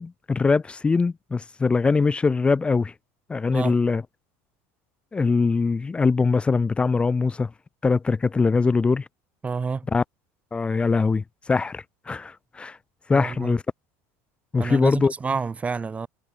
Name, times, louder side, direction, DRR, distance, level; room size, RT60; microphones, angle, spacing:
voice 1, 0.0-2.9 3.3-4.0 5.1-7.5 7.8-9.1 9.9-10.0 10.5-12.8 13.1-13.6 14.5-15.1, left 4 dB, 15° left, 0.7 m, -22 dB
voice 2, 9.4-9.9 13.1-13.6 14.6-16.1, right 5 dB, 15° right, 3.8 m, -29 dB
cardioid pair, 145°, 8 cm